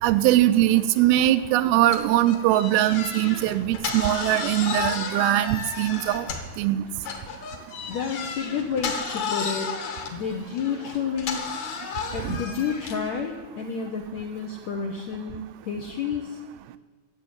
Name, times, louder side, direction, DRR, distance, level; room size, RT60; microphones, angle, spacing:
voice 1, 0.0-6.3 6.6-6.8 12.2-12.4, right 14 dB, 80° right, 12 dB, 2.4 m, -21 dB
sound 1, 1.9-6.6 7.0-13.1, left 6 dB, 55° left, 2.4 m, -33 dB
voice 2, 7.9-9.7 10.1-11.4 12.1-16.4, left 6 dB, 75° left, 2 dB, 1.7 m, -30 dB
13.5 x 8.2 x 9.4 m, 1.5 s
omnidirectional pair, 4.6 m